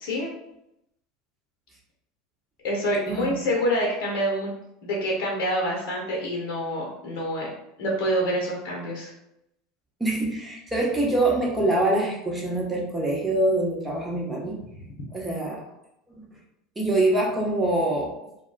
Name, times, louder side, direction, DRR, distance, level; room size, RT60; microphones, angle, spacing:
voice 1, 2.6-4.5 4.8-7.5 7.8-9.1, equal, 65° left, -3 dB, 0.9 m, -26 dB
voice 2, 10.0-14.6 15.1-15.6 16.1-16.2 16.8-18.2, right 2 dB, 10° right, -3 dB, 1.1 m, -24 dB
2.3 x 2.2 x 3.9 m, 0.82 s
hypercardioid pair, 85°, 0 cm